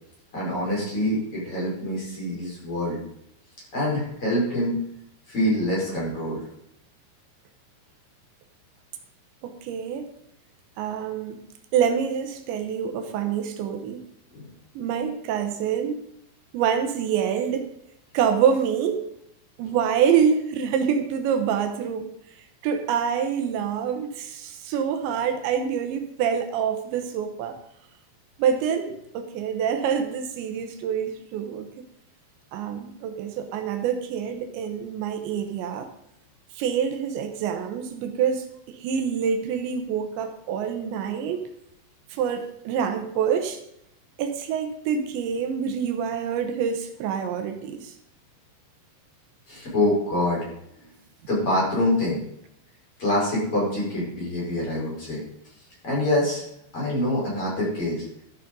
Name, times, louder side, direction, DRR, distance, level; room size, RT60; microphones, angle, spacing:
voice 1, 0.3-3.0 3.7-4.8 5.3-6.4 14.3-14.5 49.5-50.5 51.3-52.2 53.0-55.2 55.8-56.4 56.7-58.1, left 1 dB, 30° left, -6 dB, 5.7 m, -25 dB
voice 2, 9.4-10.1 10.8-11.4 11.7-14.0 14.8-16.0 16.5-17.7 18.1-19.0 19.6-22.1 22.6-27.6 28.4-31.7 32.5-35.9 36.5-41.5 42.1-43.6 44.2-48.0, right 7 dB, 80° right, 6 dB, 3.2 m, -26 dB
12.5 x 8.3 x 5.3 m, 0.76 s
omnidirectional pair, 5.2 m